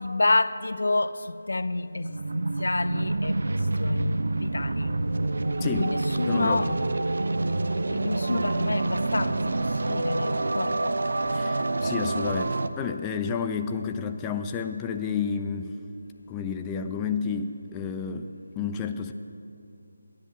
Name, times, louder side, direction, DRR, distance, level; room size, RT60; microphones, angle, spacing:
voice 1, 0.0-4.9 5.6-6.7 7.8-11.0, left 2 dB, 70° left, 0.5 m, -29 dB
sound 1, 1.9-12.7, right 2 dB, 60° right, 0.6 m, -27 dB
voice 2, 5.6-5.9 6.3-6.8 11.3-15.7 16.3-18.3 18.6-19.1, left 6 dB, 15° left, 0.4 m, -31 dB
11.5 x 10.5 x 7.6 m
figure-of-eight pair, 160°, 0 cm